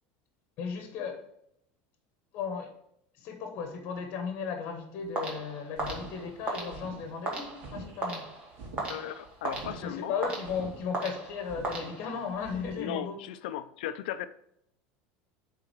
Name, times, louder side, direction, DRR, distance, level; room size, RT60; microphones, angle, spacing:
voice 1, 0.6-1.3 2.3-2.8 3.1-8.3 9.8-13.3, left 6 dB, 45° left, 1.1 m, -35 dB
sound 1, 5.1-12.4, right 2 dB, 25° right, 1.6 m, -38 dB
sound 2, 5.8-12.8, right 2 dB, 50° right, 2.2 m, -46 dB
voice 2, 8.9-10.2 12.8-14.3, left 11 dB, 90° left, 0.5 m, -36 dB
8.7 x 3.8 x 4.6 m
supercardioid pair, 155°, 5 cm